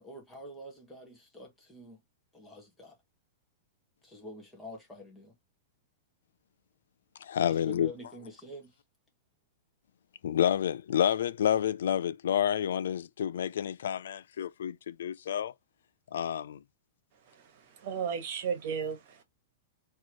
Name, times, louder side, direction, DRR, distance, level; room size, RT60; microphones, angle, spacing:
voice 1, 0.0-2.0 2.3-3.0 4.0-5.3 7.5-8.7, equal, 5° left, 1.4 m, -46 dB
voice 2, 7.2-7.9 10.2-15.5 16.1-16.6, left 9 dB, 75° left, 0.4 m, -29 dB
voice 3, 17.3-19.2, right 7 dB, 40° right, 1.4 m, -35 dB
4.3 x 3.0 x 3.0 m
supercardioid pair, 170°, 0 cm